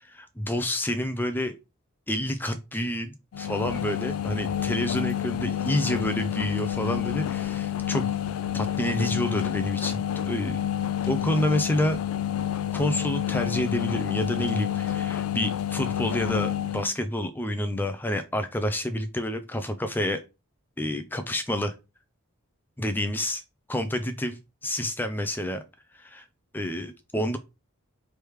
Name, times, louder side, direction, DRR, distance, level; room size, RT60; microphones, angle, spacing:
voice 1, 0.0-1.6 2.1-8.2 8.5-10.6 11.1-12.0 12.7-20.2 20.8-21.7 22.8-23.4 23.7-25.6 26.0-26.2 26.5-27.4, left 1 dB, 10° left, 0.4 m, -29 dB
sound 1, 3.3-16.9, left 10 dB, 75° left, 0.3 m, -29 dB
4.6 x 3.3 x 3.2 m
head